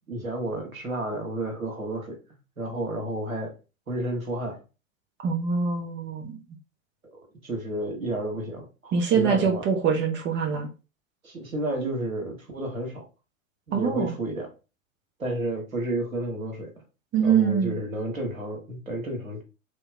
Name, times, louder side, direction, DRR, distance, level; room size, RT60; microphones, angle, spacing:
voice 1, 0.1-2.2 2.6-3.5 3.9-4.6 7.1-9.6 11.2-13.0 13.7-14.5 15.2-16.7 17.2-19.4, right 1 dB, 85° right, 1.4 m, -31 dB
voice 2, 5.2-6.4 8.9-10.7 13.7-14.1 17.1-17.7, right 6 dB, 25° right, 1.0 m, -24 dB
3.3 x 2.9 x 3.5 m
figure-of-eight pair, 95°, 40 cm